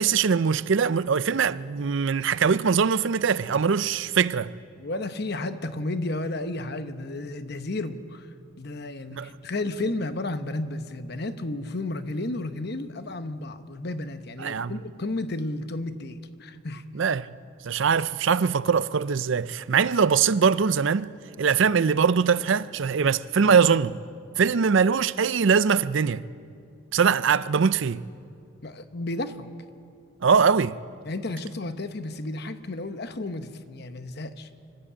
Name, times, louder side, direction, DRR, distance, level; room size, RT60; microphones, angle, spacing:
voice 1, 0.0-4.5 9.1-9.3 14.4-14.7 16.9-17.3 17.6-21.1 21.4-24.0 24.4-26.2 26.9-28.0 30.2-30.8, right 6 dB, 65° right, 0.5 m, -22 dB
voice 2, 4.8-8.3 8.6-16.8 28.6-29.5 31.0-34.5, left 2 dB, 50° left, 0.9 m, -32 dB
24.5 x 12.5 x 8.6 m
head